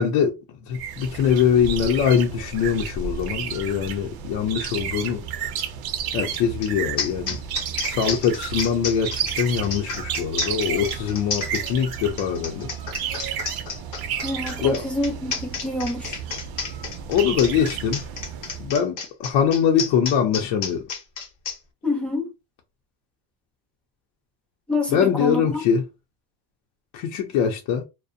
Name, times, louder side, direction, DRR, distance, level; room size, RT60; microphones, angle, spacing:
voice 1, 0.0-5.2 6.1-7.4 7.8-12.7 14.6-14.8 17.1-18.0 18.6-20.9 24.9-25.9 26.9-27.8, left 7 dB, 75° left, 0.7 m, -23 dB
sound 1, 0.7-18.8, right 8 dB, 50° right, 0.5 m, -32 dB
sound 2, 6.6-6.7 7.0-21.6, left 5 dB, 40° left, 0.7 m, -31 dB
voice 2, 14.2-16.2 21.8-22.3 24.7-25.6, left 2 dB, ahead, 0.5 m, -27 dB
2.4 x 2.1 x 2.5 m
cardioid pair, 160°, 48 cm